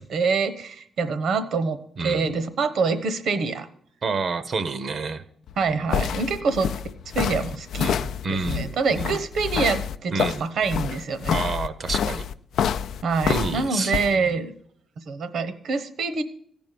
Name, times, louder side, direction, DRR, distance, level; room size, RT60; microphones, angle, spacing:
voice 1, 0.0-3.7 5.6-6.7 7.1-8.0 8.3-11.4 13.0-14.5 15.1-16.2, right 4 dB, 65° right, 12 dB, 1.0 m, -25 dB
voice 2, 2.0-2.4 4.0-5.2 7.8-9.2 10.1-10.5 11.3-12.3 13.3-14.4, right 4 dB, 45° right, 12 dB, 0.7 m, -29 dB
sound 1, 5.5-14.1, left 8 dB, 80° left, 0.4 m, -27 dB
15.0 x 5.2 x 9.1 m, 0.63 s
wide cardioid pair, 155°, 0 cm